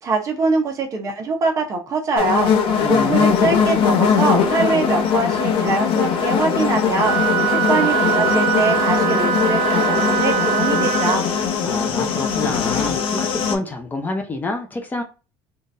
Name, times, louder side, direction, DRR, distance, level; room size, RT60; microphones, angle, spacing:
voice 1, 0.0-2.5 2.9-7.2 7.5-11.3, right 3 dB, 35° right, 0.9 m, -23 dB
sound 1, 2.1-13.5, left 6 dB, 65° left, 0.9 m, -20 dB
voice 2, 2.8-3.5 11.6-15.0, left 2 dB, 20° left, 0.7 m, -27 dB
Wind instrument woodwind instrument, 7.0-11.2, right 9 dB, 80° right, 0.9 m, -22 dB
3.8 x 2.5 x 2.6 m
cardioid pair, 150°, 10 cm